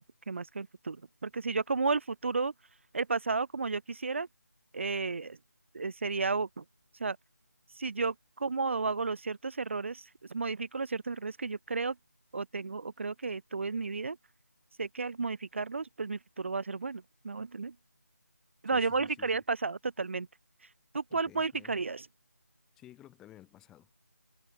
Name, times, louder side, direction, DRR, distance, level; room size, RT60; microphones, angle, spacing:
voice 1, 0.0-2.5 2.9-4.3 4.7-5.4 5.7-6.6 6.9-7.2 7.7-12.0 12.3-14.2 14.8-17.8 18.6-20.3 20.6-22.1, right 4 dB, 45° right, 0.6 m, -33 dB
voice 2, 18.7-19.4 21.1-21.7 22.8-23.9, left 13 dB, 5° left, 0.9 m, -54 dB
figure-of-eight pair, 170°, 9 cm